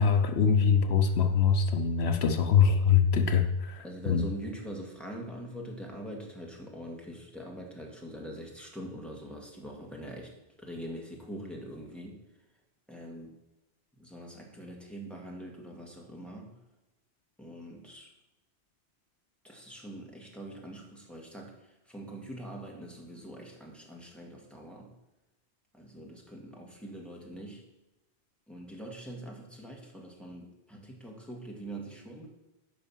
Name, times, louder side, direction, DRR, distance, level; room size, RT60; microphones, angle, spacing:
voice 1, 0.0-4.3, left 6 dB, 75° left, 7 dB, 1.0 m, -24 dB
voice 2, 3.8-10.3 10.6-12.2 12.9-13.4 14.0-16.5 17.4-18.1 19.4-24.9 25.7-27.6 28.5-32.3, right 1 dB, ahead, -2 dB, 2.0 m, -43 dB
10.0 x 5.4 x 7.2 m, 1.0 s
omnidirectional pair, 1.1 m